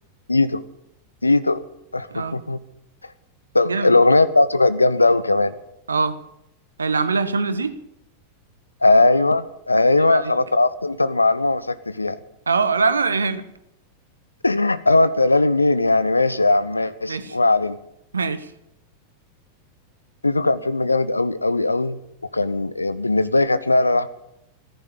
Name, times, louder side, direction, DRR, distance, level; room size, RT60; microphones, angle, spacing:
voice 1, 0.3-0.6 1.2-1.6 1.9-2.6 3.5-5.5 8.8-12.2 14.4-17.8 20.2-22.0 22.3-24.1, left 2 dB, 80° left, 15 dB, 0.6 m, -19 dB
voice 2, 5.9-6.2 6.8-7.7 10.0-10.3 12.5-13.4 17.1-17.4 18.1-18.5, right 4 dB, 75° right, 13 dB, 1.1 m, -22 dB
15.0 x 10.5 x 9.0 m, 0.79 s
figure-of-eight pair, 90°, 0 cm